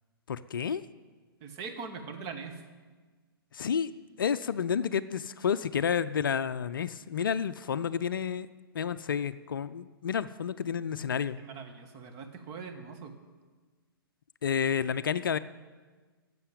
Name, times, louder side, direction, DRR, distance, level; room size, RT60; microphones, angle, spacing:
voice 1, 0.3-0.8 3.5-3.9 4.2-8.5 8.7-11.4 14.4-15.4, left 7 dB, 60° left, 14 dB, 0.5 m, -30 dB
voice 2, 1.4-2.6 11.4-13.1, right 5 dB, 30° right, 4 dB, 1.4 m, -41 dB
11.0 x 7.7 x 9.3 m, 1.4 s
figure-of-eight pair, 120°, 13 cm